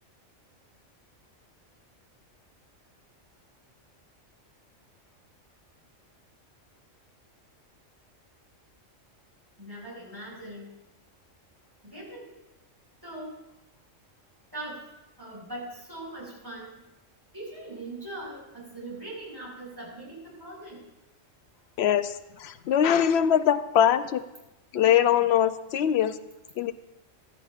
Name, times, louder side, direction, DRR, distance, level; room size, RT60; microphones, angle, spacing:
voice 1, 9.6-10.7 11.8-12.3 13.0-13.4 14.5-14.8 15.2-16.7 17.3-20.8, right 1 dB, 15° right, -5 dB, 4.9 m, -40 dB
voice 2, 21.8-22.1 22.4-24.2 24.7-26.2 26.6-26.7, left 9 dB, 65° left, 11 dB, 0.8 m, -22 dB
16.0 x 12.0 x 2.4 m, 0.95 s
omnidirectional pair, 1.3 m